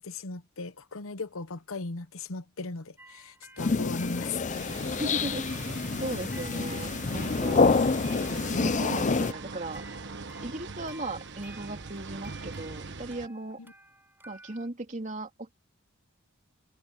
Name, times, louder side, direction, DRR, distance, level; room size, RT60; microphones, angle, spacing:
voice 1, 0.0-4.7, left 3 dB, 70° left, 1.0 m, -37 dB
sound 1, 3.0-14.7, right 2 dB, 10° right, 6.0 m, -54 dB
sound 2, 3.6-9.3, left 4 dB, 35° left, 0.6 m, -27 dB
sound 3, 4.5-13.3, right 4 dB, 55° right, 1.2 m, -41 dB
voice 2, 4.9-5.5 6.0-7.8 8.6-9.8 10.4-13.6 14.3-15.5, right 2 dB, 35° right, 2.8 m, -37 dB
head